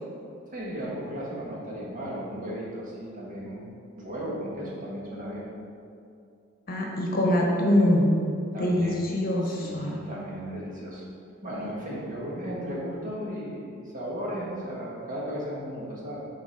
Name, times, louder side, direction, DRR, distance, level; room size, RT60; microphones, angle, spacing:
voice 1, 0.5-3.6 3.9-5.5 8.5-9.0 9.4-11.0 11.4-16.2, equal, 40° right, -5 dB, 1.5 m, -35 dB
voice 2, 6.7-8.1 8.6-10.0, left 1 dB, 45° left, -1 dB, 1.0 m, -24 dB
7.0 x 3.9 x 5.1 m, 2.5 s
head